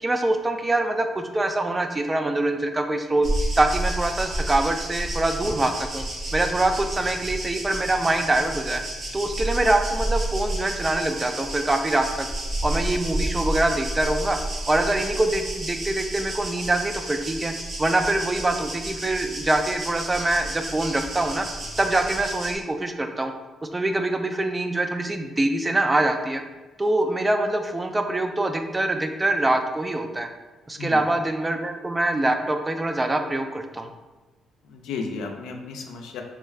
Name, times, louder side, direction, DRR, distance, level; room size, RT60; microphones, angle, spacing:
voice 1, 0.0-3.3 3.6-6.0 6.3-8.8 9.1-12.3 12.6-14.4 14.7-17.5 17.8-21.5 21.8-23.3 23.7-26.4 26.8-30.3 30.7-33.9, right 2 dB, 20° right, 6 dB, 0.3 m, -24 dB
sound 1, 3.2-22.6, right 1 dB, 55° right, 1.0 m, -31 dB
voice 2, 34.6-36.2, left 4 dB, 85° left, 3 dB, 0.4 m, -33 dB
3.5 x 2.3 x 3.2 m, 1.2 s
cardioid pair, 90°, 0 cm